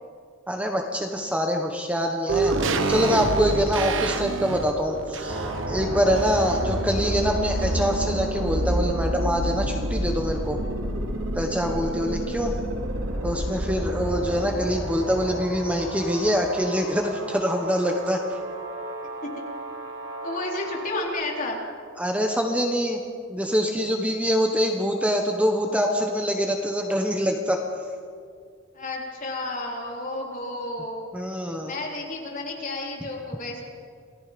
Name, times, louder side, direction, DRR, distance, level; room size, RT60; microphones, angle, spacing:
voice 1, 0.5-2.5 2.9-10.6 11.3-12.5 13.2-18.2 22.0-23.0 23.3-27.6 31.1-31.7, equal, 5° right, 2 dB, 1.2 m, -25 dB
sound 1, 2.3-6.8 7.1-7.2, right 3 dB, 70° right, 1.2 m, -27 dB
sound 2, 5.3-21.1, right 1 dB, 90° right, 3.0 m, -30 dB
voice 2, 20.2-21.6 28.7-31.1 31.6-33.6, left 2 dB, 40° left, -2 dB, 4.0 m, -32 dB
27.5 x 18.0 x 5.2 m, 2.2 s
head